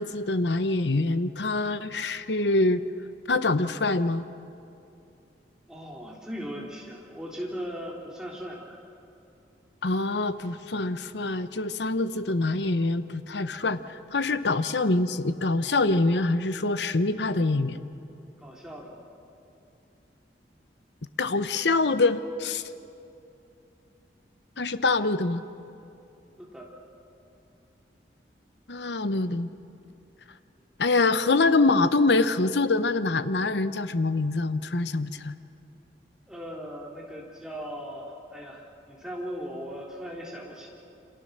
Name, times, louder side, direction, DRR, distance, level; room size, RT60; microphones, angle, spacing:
voice 1, 0.0-2.8 3.3-4.2 9.8-17.8 21.2-22.6 24.6-25.4 28.7-29.5 30.8-35.3, left 3 dB, 75° left, 12 dB, 0.9 m, -25 dB
voice 2, 5.7-8.8 18.4-18.9 26.4-26.7 36.3-40.7, equal, 5° right, -3 dB, 3.5 m, -38 dB
28.0 x 26.0 x 6.7 m, 2.7 s
head